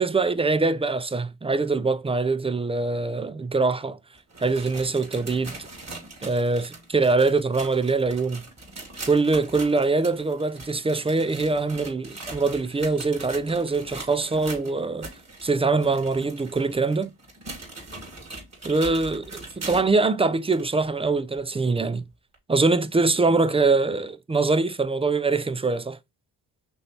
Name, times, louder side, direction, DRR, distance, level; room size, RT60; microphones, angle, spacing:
voice 1, 0.0-4.0 4.4-5.5 6.2-8.4 9.1-15.1 15.4-17.1 18.6-22.0 22.5-26.0, right 3 dB, 15° right, 0.4 m, -23 dB
sound 1, 4.1-20.0 20.5-20.6 21.3-21.4 22.3-22.4, right 2 dB, 35° right, 2.3 m, -41 dB
5.2 x 3.1 x 3.2 m
supercardioid pair, 50°, 44 cm